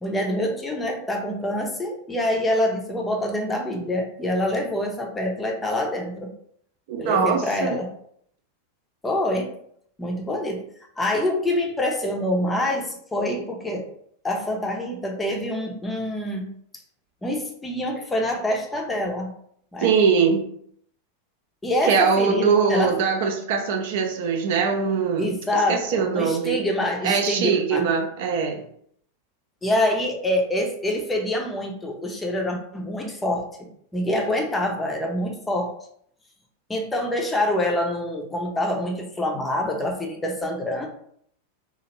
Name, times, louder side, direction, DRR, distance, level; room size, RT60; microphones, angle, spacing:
voice 1, 0.0-6.3 7.0-7.9 9.0-9.5 10.0-10.6 11.0-13.8 14.2-16.5 17.2-19.3 19.7-19.9 21.6-22.9 25.2-27.9 29.6-33.4 33.9-35.7 36.7-40.9, left 1 dB, 10° left, 1 dB, 0.6 m, -26 dB
voice 2, 6.9-7.8 19.8-20.4 21.8-26.6 27.0-28.6, right 6 dB, 50° right, 3 dB, 0.5 m, -22 dB
2.8 x 2.4 x 2.9 m, 0.66 s
figure-of-eight pair, 90°, 0 cm